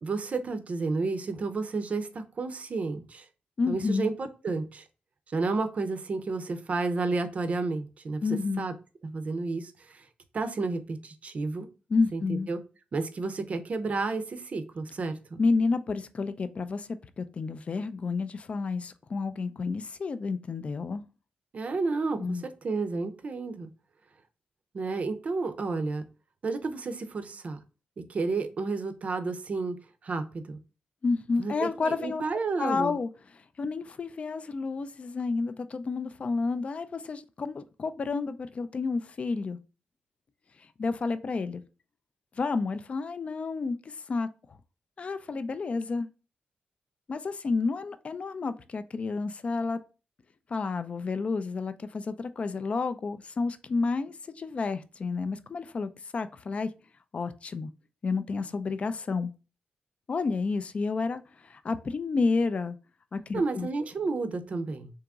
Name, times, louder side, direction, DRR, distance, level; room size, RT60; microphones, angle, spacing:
voice 1, 0.0-3.3 3.7-4.9 5.3-8.2 8.6-8.7 9.0-10.0 10.3-11.7 12.1-12.6 12.9-15.4 21.5-23.7 24.7-26.0 26.4-27.6 28.0-29.8 30.0-30.6 31.4-33.0 63.3-64.9, right 3 dB, 45° right, 0.5 m, -31 dB
voice 2, 3.6-4.1 8.2-8.7 11.9-12.5 15.4-16.9 17.2-21.0 22.2-22.4 31.0-32.2 32.6-39.6 40.8-41.6 42.4-44.6 45.0-46.1 47.1-49.8 50.5-56.7 57.1-57.7 58.0-59.3 60.1-62.8 63.1-63.7, left 4 dB, 40° left, 0.4 m, -30 dB
3.5 x 2.9 x 3.6 m
wide cardioid pair, 115°, 3 cm